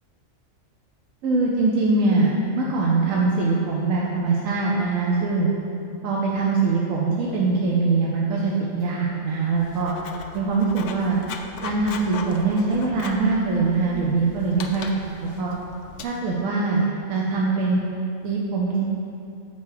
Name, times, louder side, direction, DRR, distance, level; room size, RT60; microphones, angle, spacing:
voice 1, 1.2-5.5 6.0-9.9 10.3-11.2 11.6-15.5 16.0-17.8 18.2-18.8, right 3 dB, 80° right, -3 dB, 1.2 m, -22 dB
Writing, 9.5-16.0, left 5 dB, 65° left, 0.9 m, -39 dB
7.8 x 5.6 x 4.8 m, 2.6 s
omnidirectional pair, 1.4 m